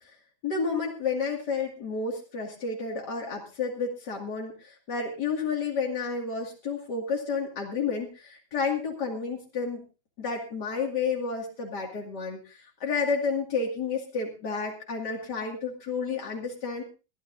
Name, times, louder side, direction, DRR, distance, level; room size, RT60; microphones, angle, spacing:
voice 1, 0.4-9.8 10.2-16.8, left 5 dB, 85° left, -1 dB, 2.9 m, -31 dB
22.0 x 14.0 x 2.6 m, 0.31 s
omnidirectional pair, 1.8 m